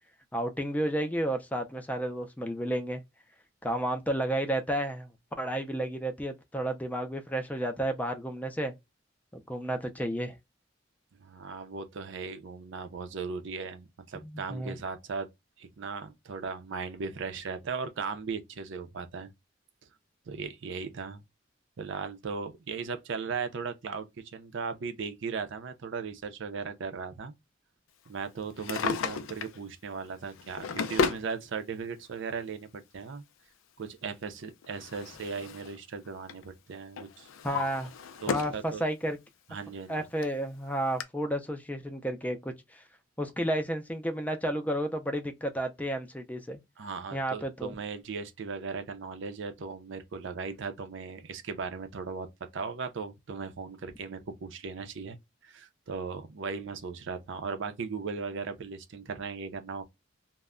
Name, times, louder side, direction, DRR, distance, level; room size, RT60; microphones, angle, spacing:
voice 1, 0.3-3.0 3.6-5.1 5.4-8.7 9.3-10.4 14.2-14.7 37.4-37.9 38.3-39.2 39.9-42.8 43.2-46.6 47.1-47.7, right 1 dB, 10° left, 0.4 m, -32 dB
voice 2, 11.2-15.3 15.6-19.3 20.3-21.2 21.8-27.3 28.1-33.2 33.8-37.6 38.2-38.8 39.5-40.1 46.8-52.3 52.5-59.8, right 5 dB, 65° right, 0.5 m, -37 dB
Drawer open or close, 28.5-29.6 30.3-31.3 32.4-32.5 34.2-35.8 36.1-36.4 37.0-38.6 39.1-39.2 39.9-40.0 40.2-40.3 41.0-41.1, left 5 dB, 85° left, 0.4 m, -33 dB
2.1 x 2.1 x 3.5 m
head